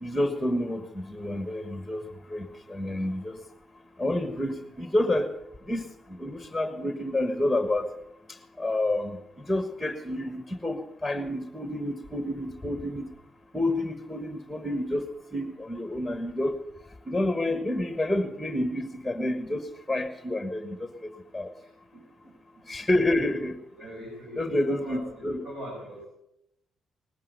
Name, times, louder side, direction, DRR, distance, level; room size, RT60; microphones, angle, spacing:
voice 1, 0.0-2.0 2.3-3.4 4.0-5.3 5.7-5.8 6.2-7.9 8.6-13.1 13.5-15.0 15.3-16.6 17.1-19.6 19.9-20.9 21.3-21.5 22.7-23.6 24.4-25.4, left 1 dB, ahead, 8 dB, 1.5 m, -29 dB
voice 2, 21.6-22.0 23.8-26.1, equal, 80° right, -2 dB, 5.6 m, -42 dB
19.0 x 11.0 x 6.9 m, 0.81 s
cardioid pair, 90°, 0 cm